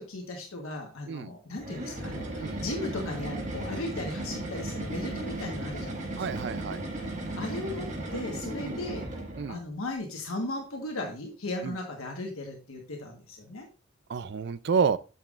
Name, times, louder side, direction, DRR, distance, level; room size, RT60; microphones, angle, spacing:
voice 1, 0.0-6.4 7.3-9.1 9.5-13.7, left 2 dB, 90° left, 1.3 m, -37 dB
sound 1, 1.6-9.6, right 1 dB, 35° right, 1.6 m, -35 dB
voice 2, 6.2-6.8 8.6-8.8 9.4-9.6 11.6-11.7 14.1-15.0, right 6 dB, 50° right, 0.3 m, -29 dB
8.9 x 6.8 x 2.4 m
head